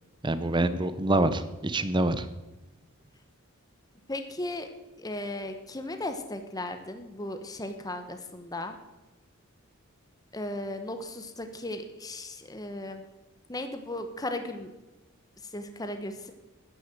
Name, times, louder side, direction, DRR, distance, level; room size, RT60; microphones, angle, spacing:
voice 1, 0.2-2.3, right 2 dB, 20° right, 13 dB, 0.7 m, -26 dB
voice 2, 4.1-4.7 5.0-8.8 10.3-13.0 13.5-14.7 15.4-16.3, left 1 dB, 15° left, 7 dB, 0.9 m, -36 dB
11.0 x 9.6 x 7.6 m, 1.1 s
head